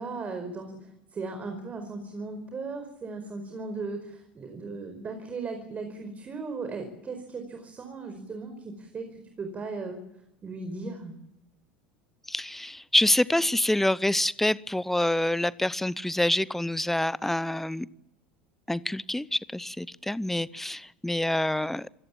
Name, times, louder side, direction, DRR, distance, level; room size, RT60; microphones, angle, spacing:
voice 1, 0.0-10.0 10.4-11.1, right 3 dB, 30° right, 6 dB, 4.9 m, -37 dB
voice 2, 12.3-17.9 18.7-21.9, left 1 dB, 5° left, 21 dB, 0.8 m, -26 dB
27.0 x 17.0 x 7.4 m, 0.92 s
figure-of-eight pair, 75°, 5 cm